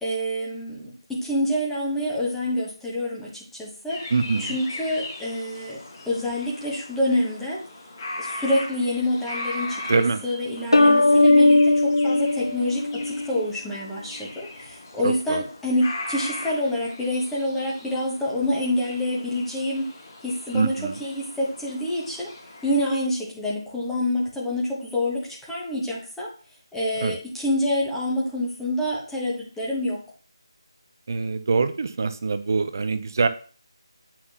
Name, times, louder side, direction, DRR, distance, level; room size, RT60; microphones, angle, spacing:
voice 1, 0.0-4.0 4.4-5.8 6.0-7.6 8.2-19.9 20.2-22.3 22.6-26.3 26.7-30.0, left 1 dB, 5° left, -5 dB, 1.2 m, -27 dB
sound 1, 3.9-23.0, left 2 dB, 35° left, 3.1 m, -39 dB
voice 2, 4.1-4.6 9.9-10.2 15.0-15.4 20.5-21.0 27.0-27.2 31.1-33.3, right 4 dB, 40° right, 12 dB, 0.6 m, -24 dB
sound 2, 10.7-13.4, left 2 dB, 80° left, 0.8 m, -18 dB
9.4 x 5.8 x 2.9 m, 0.40 s
figure-of-eight pair, 160°, 3 cm